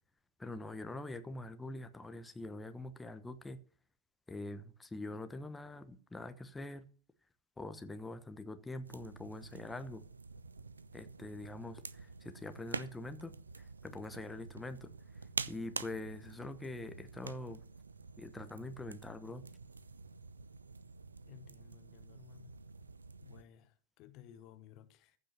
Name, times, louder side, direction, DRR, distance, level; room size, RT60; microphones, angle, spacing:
voice 1, 0.4-3.6 4.3-6.9 7.6-10.0 10.9-14.9 15.5-17.6 18.2-19.4, left 2 dB, 10° left, 1.0 m, -44 dB
sound 1, 8.8-23.4, right 4 dB, 75° right, 0.6 m, -47 dB
voice 2, 21.3-22.5 23.2-25.2, left 10 dB, 40° left, 1.0 m, -57 dB
14.5 x 5.6 x 8.0 m
figure-of-eight pair, 90°, 0 cm